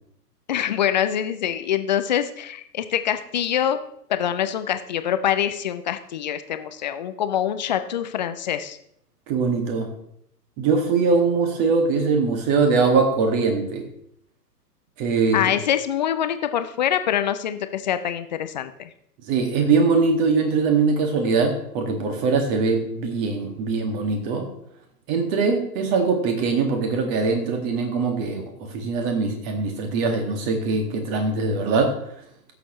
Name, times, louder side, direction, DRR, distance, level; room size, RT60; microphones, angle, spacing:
voice 1, 0.5-3.8 4.1-8.8 15.3-18.9, left 10 dB, 30° left, 10 dB, 0.5 m, -25 dB
voice 2, 9.3-9.9 10.6-13.8 15.0-15.4 19.3-24.5 25.1-31.9, right 4 dB, 30° right, 4 dB, 2.0 m, -22 dB
16.0 x 6.9 x 3.1 m, 0.72 s
figure-of-eight pair, 125°, 49 cm